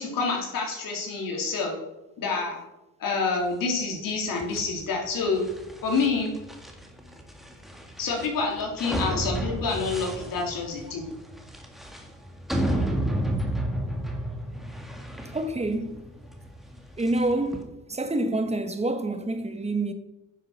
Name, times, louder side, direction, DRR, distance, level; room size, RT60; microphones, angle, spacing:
voice 1, 0.0-1.7 2.2-2.6 3.0-5.4 5.8-6.3 8.0-11.1, left 4 dB, 75° left, 3.8 m, -27 dB
sound 1, 4.4-17.6, right 1 dB, ahead, 1.7 m, -32 dB
voice 2, 15.3-16.0 17.0-19.9, right 2 dB, 20° right, 1.2 m, -27 dB
10.0 x 7.8 x 6.4 m
cardioid pair, 120°, 34 cm